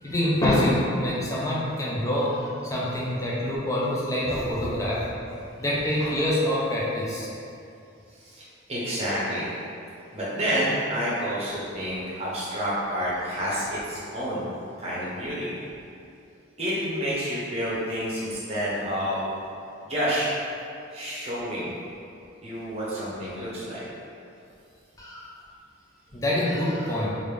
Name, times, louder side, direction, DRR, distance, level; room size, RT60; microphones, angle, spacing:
voice 1, 0.0-5.1 5.6-7.3 25.0-25.3 26.1-27.1, left 1 dB, 15° left, -6 dB, 0.4 m, -26 dB
voice 2, 8.1-9.5 10.1-14.5 14.8-15.5 16.6-19.3 19.8-20.5 20.9-21.7 22.4-23.8, equal, 30° right, -8 dB, 0.8 m, -29 dB
3.2 x 2.5 x 3.3 m, 2.6 s
head